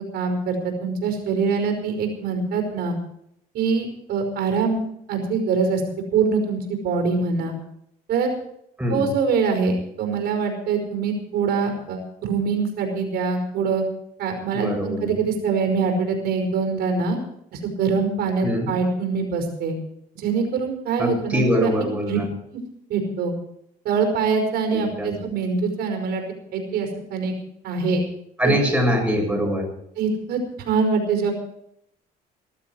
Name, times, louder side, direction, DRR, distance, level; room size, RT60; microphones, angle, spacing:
voice 1, 0.1-3.0 3.5-4.8 5.1-5.8 6.1-7.5 8.1-8.3 8.9-13.8 14.2-17.2 17.5-19.8 20.2-21.7 22.0-22.2 22.5-22.6 22.9-23.3 23.9-26.2 26.5-27.3 27.6-28.0 28.4-28.6 29.4-29.6 30.0-31.3, right 5 dB, 75° right, 4 dB, 5.2 m, -24 dB
voice 2, 8.8-9.1 14.5-15.1 18.4-18.7 21.0-22.3 24.7-25.1 28.4-29.7, equal, 10° right, 1 dB, 6.7 m, -23 dB
19.5 x 13.0 x 4.8 m, 0.73 s
cardioid pair, 110°, 17 cm